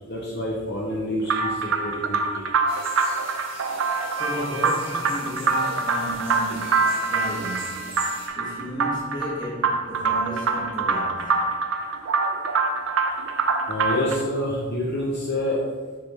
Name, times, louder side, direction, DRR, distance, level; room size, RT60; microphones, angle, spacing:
voice 1, 0.0-2.4 13.7-15.6, left 1 dB, 50° left, -4 dB, 1.0 m, -27 dB
sound 1, 1.3-14.2, right 4 dB, 65° right, 0.5 m, -25 dB
sound 2, 2.7-8.3, right 3 dB, 25° right, 1.1 m, -41 dB
voice 2, 3.6-11.5, equal, 20° left, -5 dB, 1.6 m, -34 dB
6.5 x 3.6 x 4.3 m, 1.4 s
head